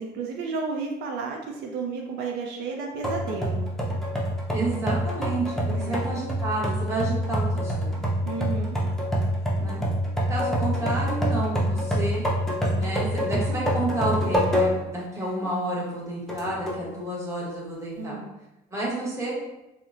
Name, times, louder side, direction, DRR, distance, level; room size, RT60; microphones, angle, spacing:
voice 1, 0.0-3.7 5.7-6.0 8.2-8.8 18.0-18.3, right 4 dB, 85° right, 1 dB, 0.4 m, -32 dB
sound 1, 3.0-15.0 15.4-15.5 16.3-16.9, equal, 5° left, 0.5 m, -26 dB
voice 2, 4.5-8.1 9.6-9.8 10.3-12.2 12.8-18.2 18.7-19.4, right 2 dB, 15° right, -5 dB, 1.0 m, -30 dB
2.8 x 2.0 x 2.4 m, 0.94 s
cardioid pair, 110°, 17 cm